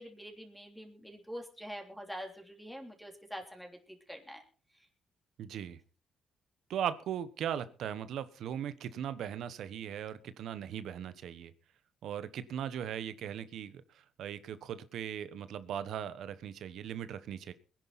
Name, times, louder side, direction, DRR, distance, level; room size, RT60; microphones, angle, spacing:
voice 1, 0.0-4.4, equal, ahead, 3 dB, 3.3 m, -45 dB
voice 2, 5.4-5.8 6.7-11.5 12.0-17.5, right 9 dB, 75° right, 14 dB, 1.2 m, -38 dB
21.5 x 11.0 x 4.2 m, 0.38 s
cardioid pair, 90°, 0 cm